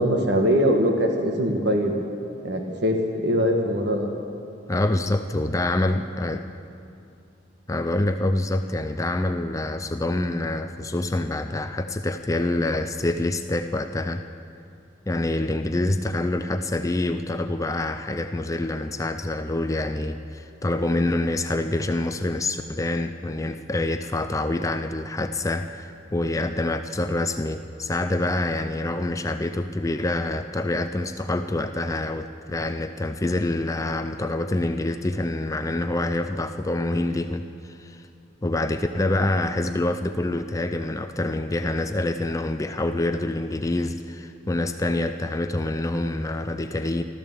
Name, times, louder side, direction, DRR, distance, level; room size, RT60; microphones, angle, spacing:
voice 1, 0.0-1.9 2.4-4.1, equal, 60° right, 2 dB, 1.4 m, -22 dB
voice 2, 4.7-6.5 7.7-14.2 15.1-38.1 38.4-47.0, left 2 dB, 15° left, 8 dB, 0.4 m, -26 dB
14.5 x 13.5 x 7.1 m, 2.6 s
head